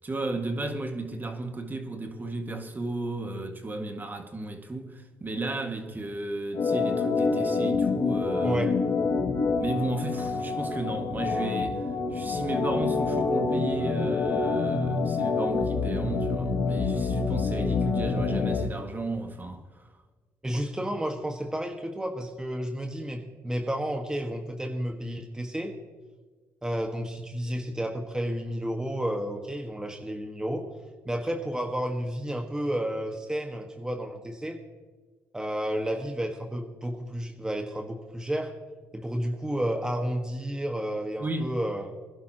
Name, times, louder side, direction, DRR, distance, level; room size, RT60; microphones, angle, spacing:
voice 1, 0.0-8.6 9.6-19.9 20.5-20.6 41.2-41.5, right 2 dB, 30° right, 2.0 m, -34 dB
Organ, 6.5-18.7, left 4 dB, 70° left, 2.3 m, -27 dB
voice 2, 20.4-25.7 26.6-30.6 31.0-34.6 35.3-38.5 38.9-41.9, equal, 10° right, 1.6 m, -31 dB
22.0 x 11.0 x 3.0 m
supercardioid pair, 65°, 7 cm